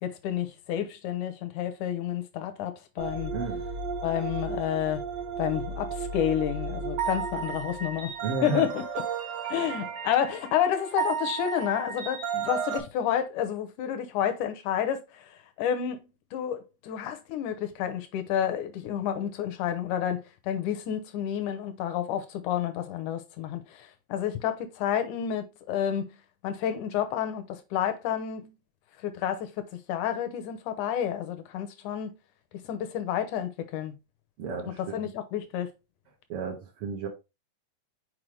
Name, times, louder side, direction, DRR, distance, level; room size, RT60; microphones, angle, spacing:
voice 1, 0.0-3.3 4.0-5.0 5.4-8.1 8.4-8.9 9.5-26.1 26.4-28.5 29.0-32.2 32.7-34.0 34.8-35.7, left 10 dB, 70° left, 2.1 m, -30 dB
sound 1, 3.0-12.8, right 5 dB, 55° right, 2.0 m, -34 dB
voice 2, 3.3-3.6 8.2-8.7 34.4-35.1 36.3-37.1, right 4 dB, 75° right, 1.3 m, -32 dB
6.2 x 4.6 x 3.3 m
omnidirectional pair, 4.1 m